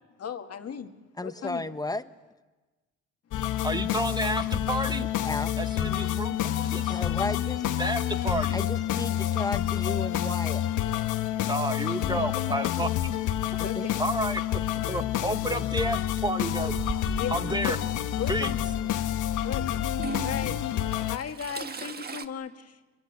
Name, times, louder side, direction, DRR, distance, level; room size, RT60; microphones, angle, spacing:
voice 1, 0.2-1.0 1.2-1.7 13.6-14.0 14.8-14.9 17.2-17.8 18.2-19.1 19.4-19.9 20.2-20.6 21.1-22.8, left 8 dB, 55° left, 6 dB, 1.9 m, -36 dB
voice 2, 1.2-2.0 5.2-5.5 6.9-7.7 8.5-10.7 13.6-13.9, left 2 dB, 10° left, 11 dB, 1.2 m, -33 dB
sound 1, 3.3-21.2, left 12 dB, 85° left, 1.2 m, -28 dB
voice 3, 3.6-5.1 5.6-7.0 7.8-8.6 11.5-12.9 14.0-14.6 14.9-16.8 17.3-17.8 18.3-18.5, right 1 dB, 15° right, 8 dB, 1.3 m, -30 dB
Toilet flush / Trickle dribble, 16.5-17.4 18.5-18.6 19.9-22.3, right 5 dB, 30° right, 1.5 m, -38 dB
26.0 x 23.0 x 9.4 m, 1.2 s
cardioid pair, 90°, 30 cm